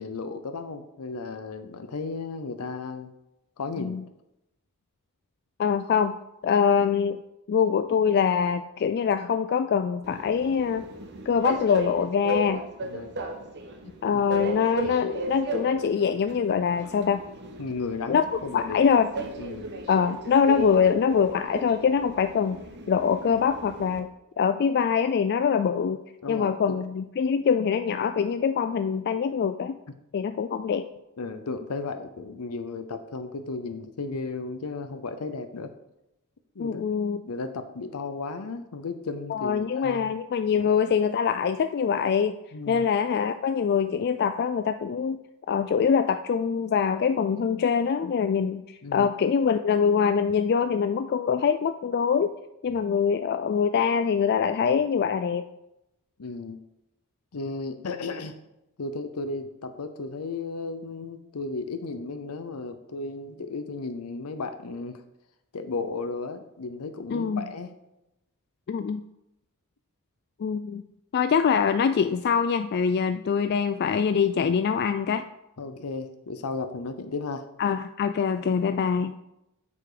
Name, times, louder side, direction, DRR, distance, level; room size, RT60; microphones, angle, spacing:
voice 1, 0.0-3.1 3.6-4.0 12.8-13.2 14.0-14.2 14.8-14.9 17.6-18.8 19.4-19.7 26.2-26.8 31.2-35.7 36.6-36.8 37.3-40.1 40.5-40.7 42.5-42.9 48.8-49.1 52.7-52.8 56.2-56.6 57.3-58.4 58.8-65.0 65.5-67.7 75.6-77.5, left 3 dB, 85° left, 8 dB, 0.7 m, -34 dB
voice 2, 5.6-6.2 6.4-7.2 7.5-10.9 11.3-12.6 14.0-17.2 18.1-19.1 19.9-22.6 22.9-24.1 24.4-26.0 26.3-29.8 30.1-30.9 36.6-37.2 39.3-42.3 42.7-45.2 45.5-52.3 52.6-55.5 67.1-67.4 68.7-69.0 70.4-70.8 71.1-75.2 77.6-79.1, left 6 dB, 45° left, 10 dB, 0.3 m, -24 dB
Train, 10.0-24.0, right 1 dB, 50° right, 1.2 m, -36 dB
8.4 x 6.9 x 5.0 m, 0.89 s
head